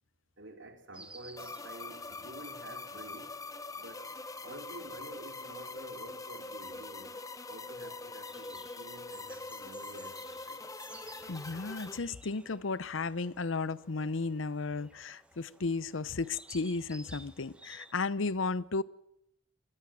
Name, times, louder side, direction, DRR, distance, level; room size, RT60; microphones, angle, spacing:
voice 1, 0.4-3.4 3.7-4.1 4.4-7.2 7.5-10.7, right 2 dB, 65° right, 3.6 m, -50 dB
Insect, 0.9-17.9, right 2 dB, 5° right, 1.0 m, -56 dB
sound 1, 1.4-12.0, left 3 dB, 15° left, 1.0 m, -43 dB
voice 2, 11.3-18.8, left 3 dB, 80° left, 0.8 m, -34 dB
25.5 x 19.5 x 7.5 m
head